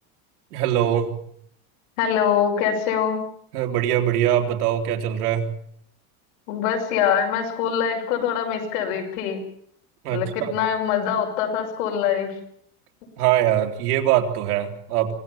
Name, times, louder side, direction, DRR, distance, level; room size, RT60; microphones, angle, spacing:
voice 1, 0.5-1.1 3.5-5.5 10.0-10.5 13.2-15.1, right 11 dB, 75° right, 4 dB, 3.6 m, -22 dB
voice 2, 2.0-3.2 6.5-9.4 10.1-12.3, left 8 dB, 60° left, 2 dB, 6.3 m, -24 dB
25.5 x 17.5 x 7.3 m, 0.67 s
supercardioid pair, 175°, 45 cm